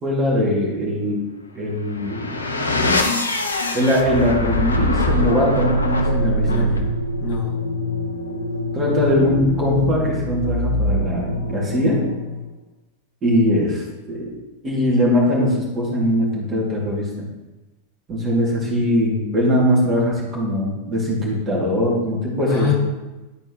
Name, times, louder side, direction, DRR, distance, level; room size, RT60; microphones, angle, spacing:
voice 1, 0.0-1.2 1.5-3.0 3.3-6.7 8.7-12.0 13.2-14.3 14.6-17.1 18.1-22.7, equal, 25° right, -4 dB, 2.5 m, -21 dB
sound 1, 1.8-12.5, left 1 dB, 80° left, 0.6 m, -23 dB
voice 2, 6.5-7.6 22.5-22.7, left 3 dB, 50° left, -4 dB, 1.8 m, -26 dB
12.0 x 4.4 x 3.1 m, 1.1 s
figure-of-eight pair, 90°, 0 cm